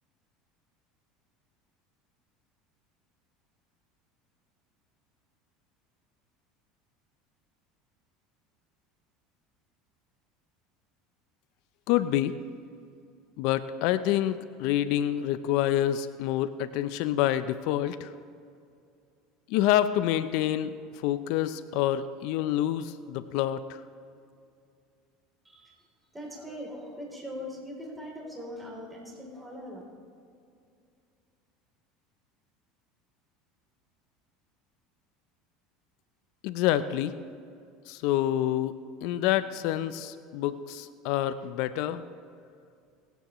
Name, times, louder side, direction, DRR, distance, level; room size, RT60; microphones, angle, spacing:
voice 1, 11.9-12.4 13.4-18.1 19.5-20.7 21.0-23.8 36.4-37.1 37.9-42.0, left 12 dB, 70° left, 13 dB, 0.5 m, -27 dB
voice 2, 25.4-29.8, equal, 10° right, -1 dB, 3.3 m, -41 dB
25.0 x 9.2 x 3.1 m, 2.4 s
supercardioid pair, 100°, 0 cm